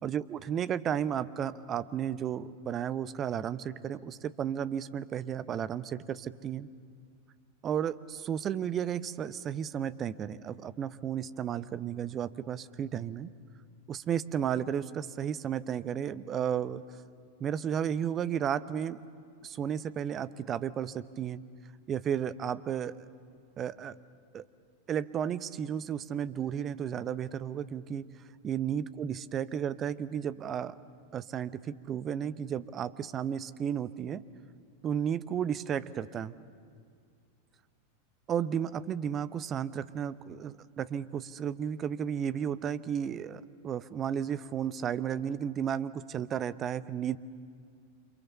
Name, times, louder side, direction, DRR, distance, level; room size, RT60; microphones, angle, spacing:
voice 1, 0.0-6.7 7.6-13.3 13.9-16.8 17.4-19.0 19.4-21.4 21.9-23.1 23.6-24.0 24.3-24.4 24.9-28.1 28.4-30.7 31.1-34.2 34.8-36.4 38.3-47.2, right 9 dB, 25° right, 16 dB, 0.8 m, -33 dB
28.5 x 27.0 x 7.0 m, 2.2 s
figure-of-eight pair, 90°, 0 cm